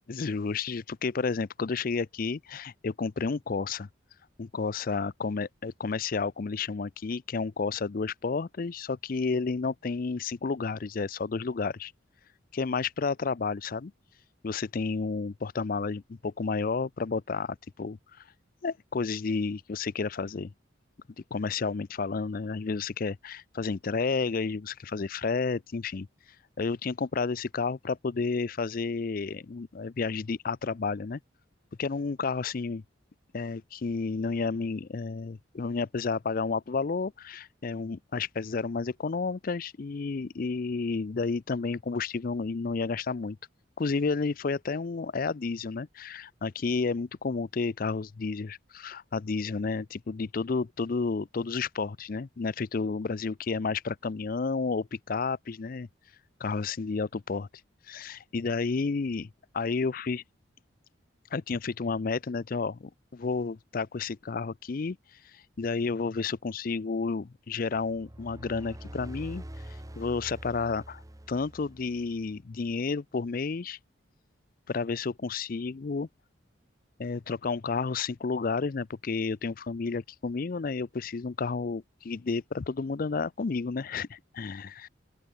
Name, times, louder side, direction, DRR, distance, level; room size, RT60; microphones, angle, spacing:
voice 1, 0.1-3.9 4.4-11.9 12.5-13.9 14.4-18.0 18.6-20.5 21.3-26.1 26.6-31.2 31.8-32.8 33.3-43.4 43.8-55.9 56.4-57.5 57.9-60.2 61.3-65.0 65.3-69.4 70.0-71.0 71.3-73.8 74.7-76.1 77.0-84.9, left 4 dB, 45° left, 0.4 m, -31 dB
sound 1, 67.8-72.4, right 1 dB, 15° right, 1.0 m, -45 dB
open air
head